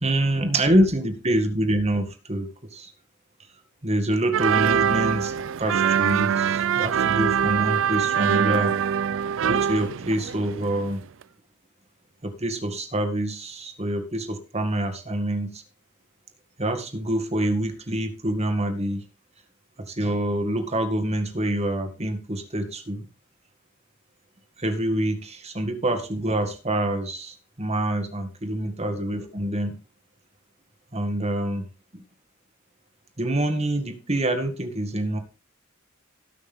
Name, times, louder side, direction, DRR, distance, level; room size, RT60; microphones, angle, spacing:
voice 1, 0.0-2.9 3.8-8.8 9.5-11.0 12.2-15.6 16.6-19.0 19.9-23.1 24.6-29.8 30.9-31.6 33.2-35.2, right 1 dB, 30° right, 6 dB, 1.9 m, -26 dB
sound 1, 4.3-10.9 11.2-11.3, right 8 dB, 65° right, 0.4 m, -23 dB
18.5 x 6.3 x 3.6 m, 0.33 s
head